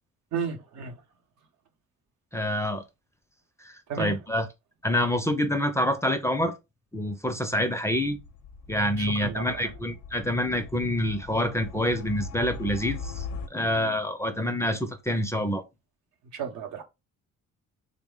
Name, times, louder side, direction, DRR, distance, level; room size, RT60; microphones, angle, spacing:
voice 1, 0.3-1.0 3.9-4.3 9.0-9.7 16.3-16.8, right 6 dB, 75° right, 0.8 m, -33 dB
voice 2, 2.3-2.8 3.6-4.4 4.8-6.5 6.9-8.2 8.7-15.6, left 1 dB, 10° left, 0.4 m, -27 dB
sound 1, 7.9-13.5, left 5 dB, 70° left, 0.6 m, -40 dB
3.4 x 2.0 x 3.6 m
cardioid pair, 90°, 30 cm